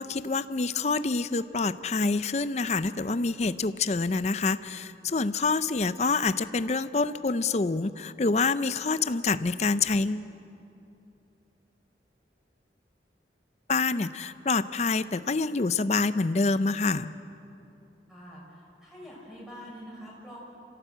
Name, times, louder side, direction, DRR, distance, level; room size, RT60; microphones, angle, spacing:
voice 1, 0.0-10.3 13.7-17.1, left 3 dB, 40° left, 14 dB, 0.5 m, -27 dB
voice 2, 18.1-20.4, equal, ahead, -5 dB, 6.2 m, -45 dB
26.5 x 16.0 x 8.0 m, 2.8 s
head